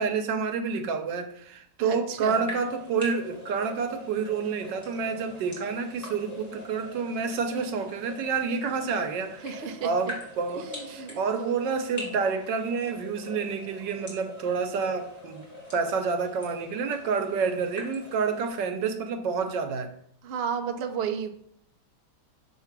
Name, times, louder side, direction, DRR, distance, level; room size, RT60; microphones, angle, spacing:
voice 1, 0.0-9.5 9.8-15.4 15.7-19.9, right 5 dB, 85° right, 7 dB, 1.4 m, -29 dB
voice 2, 1.8-2.5 9.4-9.9 10.5-11.6 20.2-21.3, right 7 dB, 60° right, 4 dB, 0.6 m, -33 dB
sound 1, 2.3-18.5, left 1 dB, 10° left, 2.4 m, -43 dB
6.6 x 3.3 x 5.9 m, 0.70 s
omnidirectional pair, 1.9 m